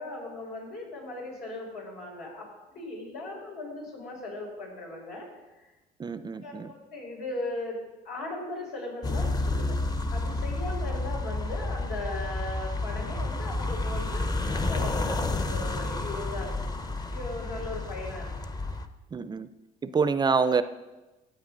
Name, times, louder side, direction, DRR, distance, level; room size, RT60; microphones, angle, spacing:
voice 1, 0.0-5.3 6.4-9.8 10.1-16.5 17.1-18.3, left 2 dB, 75° left, -2 dB, 4.6 m, -38 dB
voice 2, 6.0-6.7 19.1-19.5 19.8-20.6, right 5 dB, 25° right, 12 dB, 0.4 m, -26 dB
sound 1, 9.0-18.8, left 2 dB, 25° left, 0.8 m, -30 dB
15.5 x 8.0 x 3.9 m, 1.1 s
cardioid pair, 110°, 17 cm